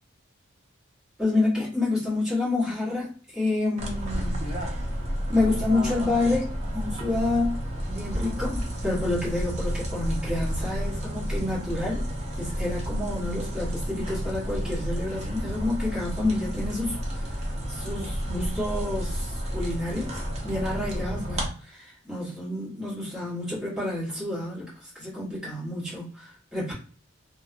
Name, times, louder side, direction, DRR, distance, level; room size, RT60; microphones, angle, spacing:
voice 1, 1.2-4.8 5.3-7.6 7.9-26.7, left 2 dB, 5° right, 1.3 m, -29 dB
sound 1, 3.8-21.5, equal, 30° right, 0.6 m, -31 dB
2.6 x 2.2 x 2.5 m
head